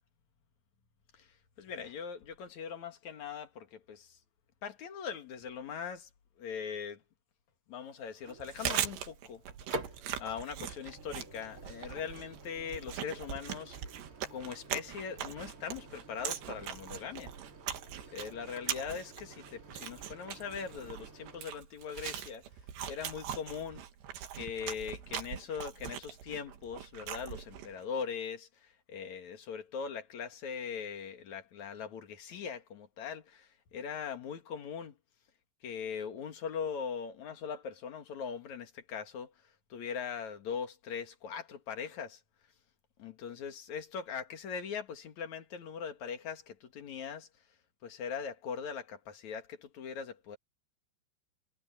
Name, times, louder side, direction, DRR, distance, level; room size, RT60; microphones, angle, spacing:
voice 1, 1.1-4.2 4.6-6.1 6.4-7.0 7.7-9.4 9.7-9.9 10.2-13.8 14.3-17.3 18.1-22.4 22.9-23.8 24.3-35.0 35.6-42.2 43.0-47.3 47.8-50.4, left 6 dB, 50° left, 2.8 m, -41 dB
Microwave oven, 7.8-21.4, right 2 dB, 35° right, 3.2 m, -49 dB
Chewing mastication, 8.3-27.8, right 10 dB, 85° right, 4.1 m, -41 dB
omnidirectional pair, 4.8 m